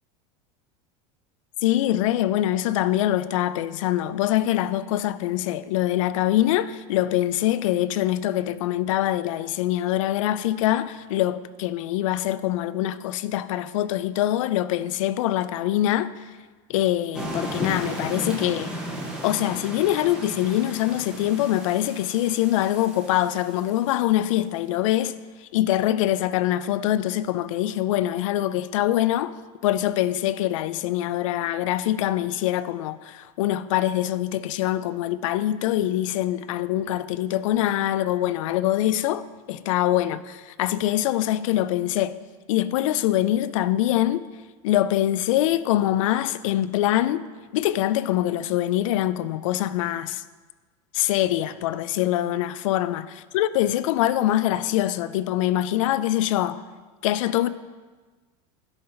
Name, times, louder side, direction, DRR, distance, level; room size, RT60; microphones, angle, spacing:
voice 1, 1.6-16.1 16.7-18.8 19.2-25.1 25.4-29.4 29.6-42.2 42.5-44.3 44.6-47.3 47.5-50.2 50.9-53.1 53.3-56.6 57.0-57.5, left 13 dB, 85° left, 0.4 m, -24 dB
Thunder Strike Video Game, 17.1-23.8, equal, 5° right, 0.8 m, -35 dB
10.5 x 3.9 x 4.3 m
supercardioid pair, 175°, 16 cm